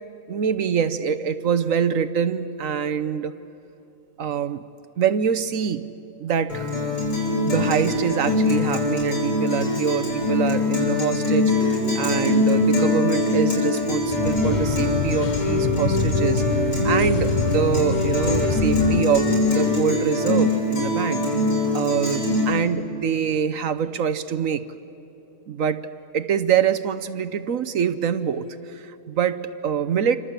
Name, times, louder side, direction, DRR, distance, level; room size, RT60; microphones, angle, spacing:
voice 1, 0.3-3.3 4.2-4.6 5.0-5.9 6.2-6.7 7.4-21.2 21.7-24.6 25.5-25.9 26.1-30.2, right 8 dB, 60° right, 12 dB, 1.1 m, -25 dB
Guitar, 6.5-22.5, left 2 dB, 85° left, 7.0 m, -22 dB
sound 1, 14.0-19.0, left 7 dB, 60° left, 0.4 m, -28 dB
28.5 x 25.5 x 8.1 m, 2.8 s
omnidirectional pair, 1.8 m